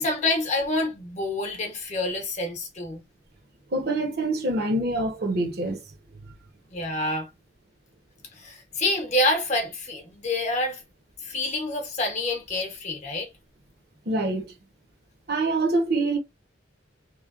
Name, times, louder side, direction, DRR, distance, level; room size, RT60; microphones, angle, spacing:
voice 1, 0.0-3.0 6.7-7.3 8.3-10.8 11.2-13.3, left 2 dB, 40° left, 0.9 m, -27 dB
voice 2, 3.7-5.8 14.1-14.5 15.3-16.2, right 2 dB, 55° right, 0.9 m, -25 dB
2.9 x 2.2 x 2.4 m
head